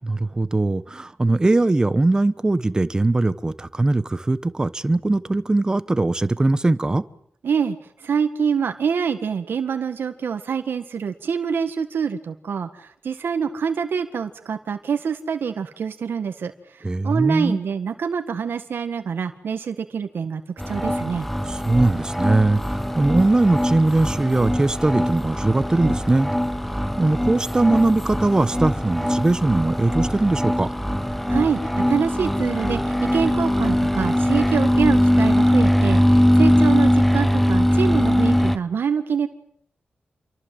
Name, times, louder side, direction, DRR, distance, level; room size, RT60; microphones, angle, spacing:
voice 1, 0.0-7.0 16.8-17.6 21.5-26.3 27.0-30.7, right 2 dB, 20° right, 1.1 m, -20 dB
voice 2, 7.4-20.4 20.7-21.3 31.3-32.8 33.1-39.3, right 6 dB, 90° right, 1.7 m, -25 dB
sound 1, 20.6-38.6, equal, 5° left, 1.1 m, -21 dB
28.5 x 23.5 x 7.8 m
wide cardioid pair, 140°, 4 cm